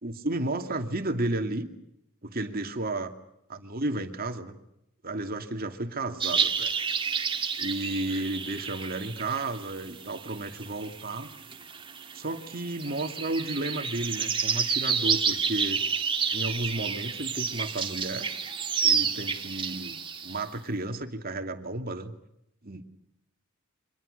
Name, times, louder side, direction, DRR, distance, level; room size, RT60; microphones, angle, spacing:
voice 1, 0.0-1.7 2.2-3.1 3.5-4.6 5.0-6.7 7.6-11.3 12.1-15.8 16.3-18.3 18.8-20.0 20.2-22.1 22.6-22.8, right 2 dB, 40° right, 6 dB, 2.5 m, -32 dB
sound 1, 6.2-20.4, right 6 dB, 25° right, 1.9 m, -30 dB
29.5 x 25.0 x 6.7 m, 0.80 s
head